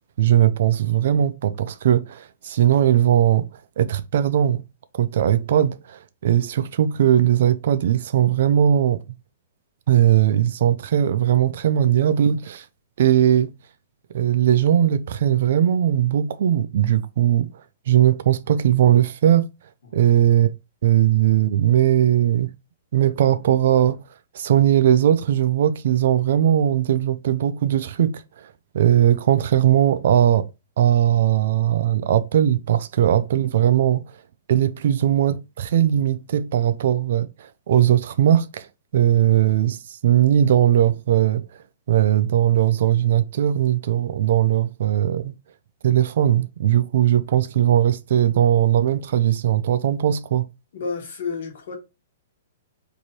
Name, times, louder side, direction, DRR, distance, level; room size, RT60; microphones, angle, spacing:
voice 1, 0.2-3.5 3.8-4.6 4.9-9.0 9.9-12.7 13.0-13.5 14.1-17.5 17.9-19.5 19.9-20.5 20.8-22.5 22.9-24.0 24.3-30.5 30.8-34.1 34.5-38.7 38.9-41.5 41.9-45.3 45.8-50.5, right 11 dB, 50° right, 0.3 m, -19 dB
voice 2, 50.7-51.8, left 5 dB, 50° left, 1.2 m, -30 dB
3.1 x 2.6 x 4.0 m
hypercardioid pair, 175°, 0 cm